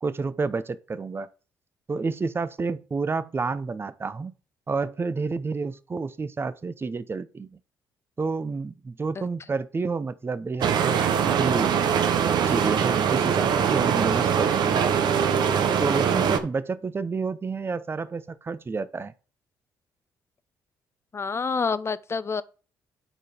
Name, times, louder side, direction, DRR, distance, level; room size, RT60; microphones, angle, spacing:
voice 1, 0.0-1.3 1.9-4.3 4.7-7.6 8.2-11.9 12.1-14.9 15.8-19.1, right 4 dB, 30° right, 0.7 m, -30 dB
sound 1, 10.6-16.4, right 7 dB, 65° right, 1.0 m, -22 dB
voice 2, 21.1-22.4, left 5 dB, 35° left, 0.6 m, -27 dB
9.2 x 4.0 x 5.0 m
supercardioid pair, 60°, 8 cm